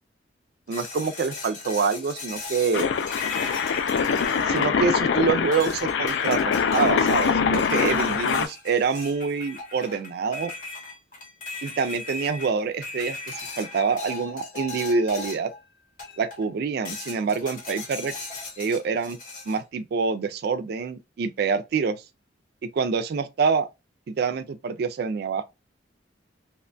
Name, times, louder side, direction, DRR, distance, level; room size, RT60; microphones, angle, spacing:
sound 1, 0.7-5.1 5.5-15.6 16.0-16.5 16.8-19.6, left 3 dB, 45° left, 0.8 m, -38 dB
voice 1, 0.7-2.9 4.5-10.5 11.6-15.5 16.2-18.1 18.6-19.2 19.5-22.0 22.7-23.7 24.1-25.4, right 5 dB, 55° right, 0.3 m, -26 dB
sound 2, 2.7-8.5, left 6 dB, 70° left, 0.3 m, -23 dB
2.8 x 2.2 x 2.5 m
head